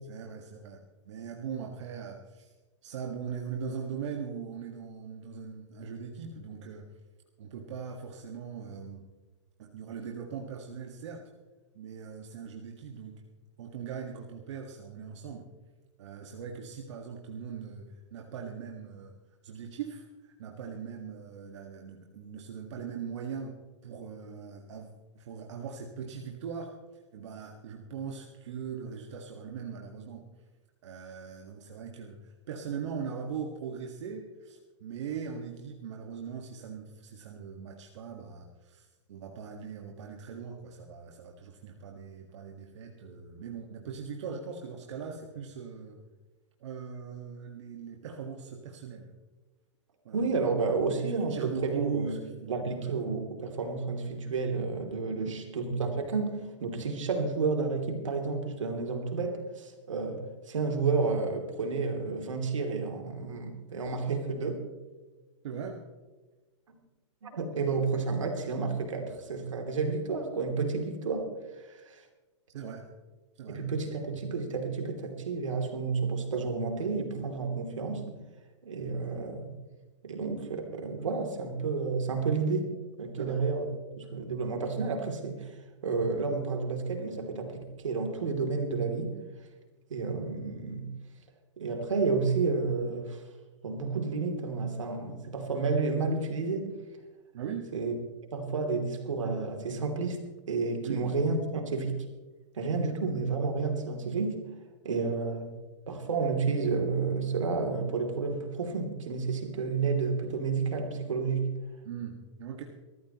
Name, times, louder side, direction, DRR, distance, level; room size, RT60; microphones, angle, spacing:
voice 1, 0.1-2.5 2.8-6.9 7.4-9.1 9.6-11.3 11.7-13.2 13.6-15.5 16.0-19.1 19.4-23.6 23.8-30.3 30.8-46.0 46.6-49.1 50.1-50.2 51.1-52.9 55.2-55.4 65.4-65.8 72.5-72.9 73.4-73.6 83.2-83.4 97.3-97.7 100.8-101.1 111.8-112.6, right 6 dB, 70° right, 2 dB, 1.8 m, -40 dB
voice 2, 50.1-52.2 52.5-60.2 60.5-64.6 67.2-71.3 71.7-72.0 73.5-78.1 78.6-79.5 80.0-82.7 83.0-83.6 84.0-85.5 85.8-89.1 89.9-90.9 91.6-93.2 93.6-96.7 97.7-97.9 98.3-100.2 100.5-102.0 102.5-104.4 104.8-105.5 105.9-111.5, right 4 dB, 90° right, 3 dB, 3.0 m, -31 dB
22.0 x 14.0 x 3.1 m, 1.2 s
hypercardioid pair, 130°, 16 cm